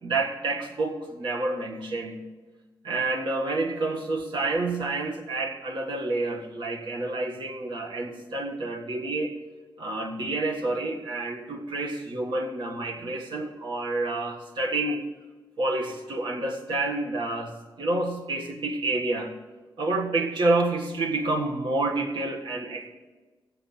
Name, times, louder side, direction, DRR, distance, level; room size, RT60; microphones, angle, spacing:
voice 1, 0.0-2.3 2.8-9.3 9.8-15.0 15.6-19.3 19.8-22.9, right 2 dB, 65° right, 2 dB, 1.7 m, -28 dB
16.5 x 7.9 x 5.7 m, 1.3 s
wide cardioid pair, 160°, 8 cm